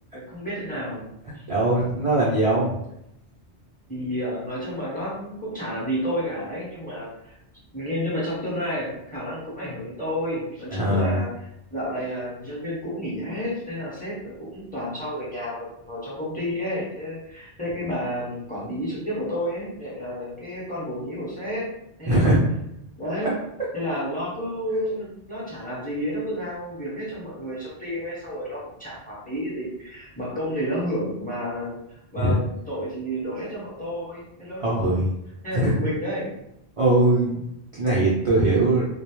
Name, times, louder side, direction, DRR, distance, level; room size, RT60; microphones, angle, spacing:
voice 1, 0.1-1.0 3.9-7.3 7.7-11.3 11.7-21.7 22.0-22.3 23.0-23.3 23.7-35.0 35.4-36.3, equal, 10° left, -7 dB, 0.7 m, -31 dB
voice 2, 1.5-2.7 10.7-11.2 22.1-22.4 23.2-23.3 32.2-32.4 34.6-35.1 35.5-35.7 36.8-38.9, right 2 dB, 60° right, -7 dB, 0.3 m, -21 dB
2.3 x 2.0 x 2.9 m, 0.81 s
omnidirectional pair, 1.2 m